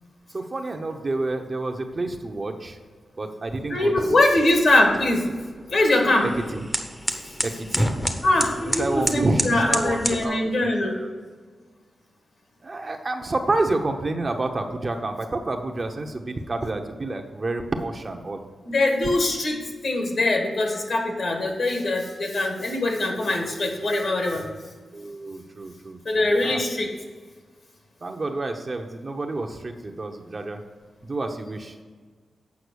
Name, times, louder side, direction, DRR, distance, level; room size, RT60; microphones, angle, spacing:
voice 1, 0.3-2.8 3.2-4.2 6.2-6.6 7.4-7.9 8.7-10.4 10.6-10.7 11.0-11.1 12.6-18.4 24.9-26.6 28.0-30.6 31.1-31.7, right 2 dB, 35° right, 4 dB, 0.9 m, -29 dB
sound 1, 3.5-10.2, equal, 10° left, 0.9 m, -30 dB
voice 2, 3.7-5.3 5.7-6.3 7.2-7.3 8.2-11.0 18.6-24.5 26.1-26.9, left 2 dB, 55° left, 2 dB, 1.9 m, -22 dB
8.3 x 5.8 x 6.3 m, 1.5 s
wide cardioid pair, 105°, 0 cm